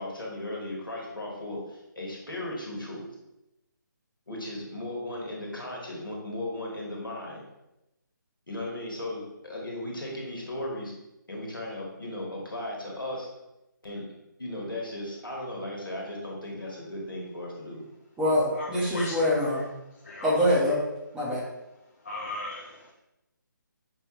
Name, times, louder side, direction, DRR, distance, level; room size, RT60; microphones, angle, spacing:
voice 1, 0.0-3.0 4.3-7.4 8.5-10.9 11.3-13.3 13.8-14.1 14.4-17.8, left 1 dB, 80° left, -2 dB, 1.4 m, -36 dB
voice 2, 18.2-19.6 20.2-20.8 21.1-21.5, left 1 dB, 5° right, -7 dB, 0.7 m, -24 dB
voice 3, 18.9-19.2 20.0-20.3 22.0-22.9, left 2 dB, 45° left, -2 dB, 0.5 m, -37 dB
5.2 x 2.3 x 3.1 m, 0.92 s
figure-of-eight pair, 150°, 11 cm